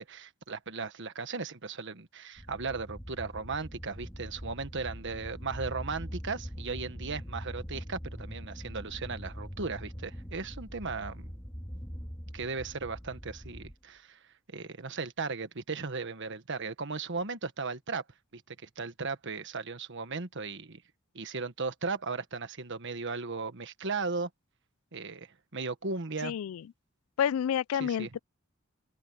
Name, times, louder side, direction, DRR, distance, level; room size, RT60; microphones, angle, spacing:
voice 1, 0.0-11.3 12.3-14.2 14.5-18.0 18.3-20.8 21.1-24.3 24.9-26.4 27.7-28.1, right 4 dB, 60° right, 1.4 m, -36 dB
sound 1, 2.4-13.8, equal, 15° left, 3.3 m, -42 dB
voice 2, 26.2-26.6 27.2-28.2, left 8 dB, 90° left, 0.3 m, -29 dB
open air
head